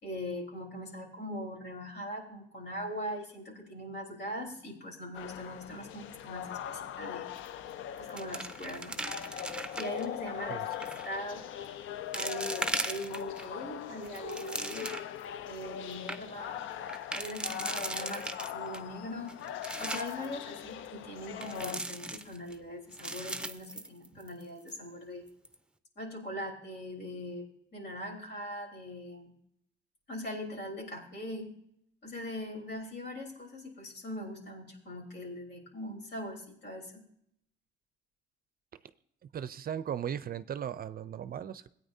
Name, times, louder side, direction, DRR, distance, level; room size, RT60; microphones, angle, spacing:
voice 1, 0.0-7.2 8.0-9.0 9.8-11.5 12.1-15.0 15.5-16.6 17.1-19.3 19.8-25.2 26.0-27.5 27.7-29.3 30.1-31.6 32.0-37.1, left 1 dB, 60° left, 4.0 m, -41 dB
sound 1, 5.1-21.8, left 10 dB, 75° left, 0.6 m, -41 dB
sound 2, 7.4-7.7 8.0-10.0 10.7-11.1 11.6-11.7 12.1-13.4 13.9-15.2 15.6-15.7 15.9-16.2 16.9-18.8 19.3-20.3 21.4-22.5 22.9-24.4 24.7-24.8 25.3-25.5, right 2 dB, 5° right, 0.7 m, -38 dB
voice 2, 39.3-41.7, right 9 dB, 50° right, 0.5 m, -37 dB
16.5 x 9.2 x 2.7 m
cardioid pair, 90°, 20 cm